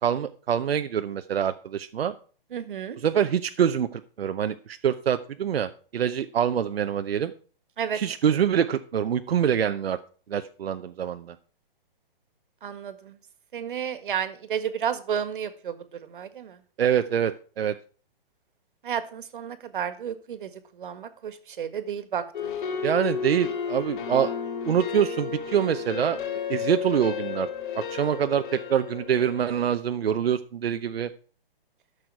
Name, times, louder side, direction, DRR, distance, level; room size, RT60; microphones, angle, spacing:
voice 1, 0.0-2.1 3.0-7.3 7.9-10.0 10.3-11.4 16.8-17.8 22.8-24.3 24.7-26.2 26.5-27.5 27.7-31.1, right 9 dB, 90° right, 9 dB, 0.8 m, -25 dB
voice 2, 2.5-3.0 7.8-8.0 12.6-13.2 13.5-16.6 18.8-22.8, right 8 dB, 60° right, 11 dB, 1.7 m, -32 dB
sound 1, 22.3-29.7, left 6 dB, 60° left, 3.4 m, -32 dB
13.5 x 6.4 x 4.7 m, 0.40 s
hypercardioid pair, 165°, 29 cm